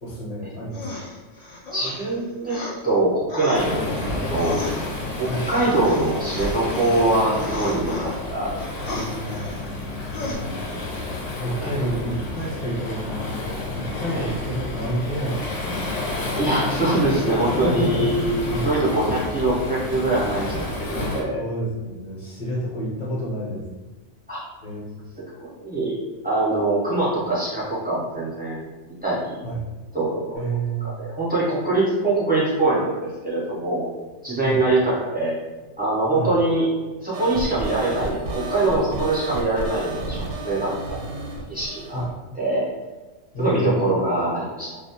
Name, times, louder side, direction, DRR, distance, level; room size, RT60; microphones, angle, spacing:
voice 1, 0.0-1.0 5.2-5.5 7.4-7.5 8.8-9.8 10.0-10.9 11.4-15.9 17.5-18.7 21.3-23.6 24.6-25.1 29.4-29.6 30.3-31.0 34.4-34.6 36.1-36.3 41.9-42.1 43.3-43.9, right 1 dB, 45° left, -7 dB, 0.8 m, -29 dB
sound 1, 0.7-2.8 3.3-8.2 8.6-9.9 10.1-10.3, left 2 dB, 65° left, 0.3 m, -35 dB
voice 2, 1.7-3.8 4.2-4.6 5.2-8.5 8.8-8.9 11.6-11.7 14.1-14.3 16.4-21.4 24.3-24.4 25.4-26.0 26.2-28.7 29.0-29.4 29.9-30.4 30.8-33.9 34.2-35.4 35.8-36.7 37.0-41.2 41.5-42.0 42.4-42.7 43.4-44.8, right 2 dB, 15° right, -9 dB, 0.3 m, -23 dB
Waves surf, 3.5-21.2, left 2 dB, 85° left, 0.9 m, -30 dB
sound 2, 37.1-42.1, right 2 dB, 80° right, 0.9 m, -32 dB
2.3 x 2.0 x 2.8 m, 1.2 s
omnidirectional pair, 1.2 m